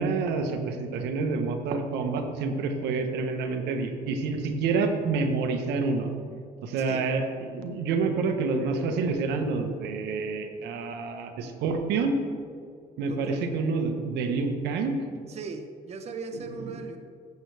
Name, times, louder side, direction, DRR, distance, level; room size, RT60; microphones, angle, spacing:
voice 1, 0.0-6.1 6.6-12.2 13.0-15.0, right 4 dB, 80° right, 6 dB, 1.2 m, -28 dB
voice 2, 6.8-7.1 13.1-13.5 15.3-17.0, right 4 dB, 40° right, 6 dB, 0.8 m, -38 dB
15.0 x 7.9 x 3.4 m, 2.2 s
cardioid pair, 110°, 17 cm